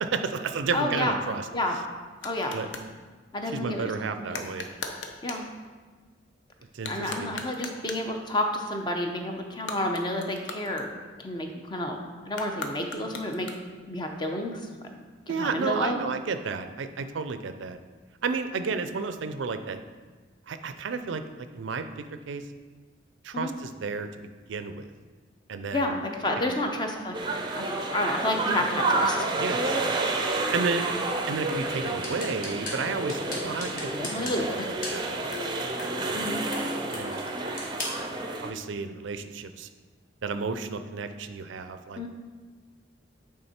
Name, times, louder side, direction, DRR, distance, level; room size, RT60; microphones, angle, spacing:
voice 1, 0.0-1.4 2.5-2.7 3.5-4.7 6.7-7.3 15.3-17.8 18.2-19.8 20.5-21.8 22.3-22.4 23.2-24.8 25.5-26.0 29.4-29.8 30.5-30.8 31.3-34.5 34.9-35.2 36.1-36.2 36.9-37.2 37.5-37.8 38.3-39.7 40.2-42.0, right 4 dB, 75° right, 9 dB, 0.4 m, -32 dB
voice 2, 0.7-1.2 1.5-1.8 2.2-2.6 3.3-4.5 5.2-5.4 6.9-10.9 11.2-12.0 12.3-13.5 13.9-14.7 15.3-16.0 23.3-23.5 25.7-27.1 27.5-29.3 33.3-33.4 33.7-34.7 36.1-36.4 37.3-37.5 42.0-42.1, left 1 dB, 25° left, 3 dB, 0.7 m, -30 dB
sound 1, 2.2-2.9 4.3-5.5 6.7-8.2 9.5-11.3 12.3-13.9, left 3 dB, 70° left, 0.7 m, -40 dB
sound 2, 27.1-38.5, right 2 dB, 25° right, 0.5 m, -30 dB
sound 3, 31.7-38.1, left 2 dB, 45° left, 1.4 m, -40 dB
8.8 x 3.6 x 4.3 m, 1.4 s
head